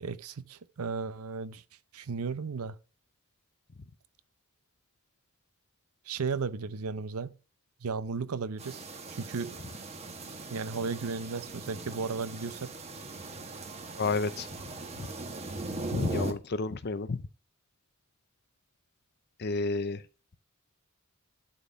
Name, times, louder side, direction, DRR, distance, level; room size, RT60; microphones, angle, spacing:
voice 1, 0.0-1.6 1.9-2.8 6.1-7.3 7.8-8.8 9.1-9.6 10.5-12.7, right 5 dB, 80° right, 0.6 m, -34 dB
sound 1, 8.6-16.3, right 2 dB, 30° right, 1.2 m, -39 dB
voice 2, 14.0-14.5 15.0-15.1 15.9-17.2 19.4-20.0, left 3 dB, 50° left, 0.6 m, -31 dB
11.5 x 4.1 x 5.7 m
head